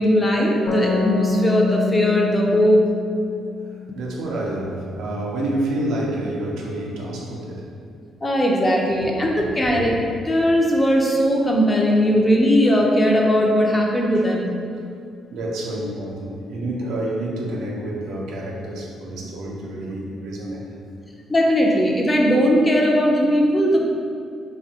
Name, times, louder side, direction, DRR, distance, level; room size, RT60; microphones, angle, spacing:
voice 1, 0.0-2.8 8.2-9.9 10.3-14.5 21.3-23.8, equal, 20° left, -1 dB, 0.4 m, -18 dB
sound 1, 0.7-4.2, left 4 dB, 85° left, 0.5 m, -26 dB
voice 2, 3.9-7.7 9.0-9.1 9.7-9.9 15.3-20.6, right 1 dB, 85° right, -2 dB, 0.5 m, -28 dB
3.3 x 2.1 x 2.7 m, 2.4 s
cardioid pair, 90°, 0 cm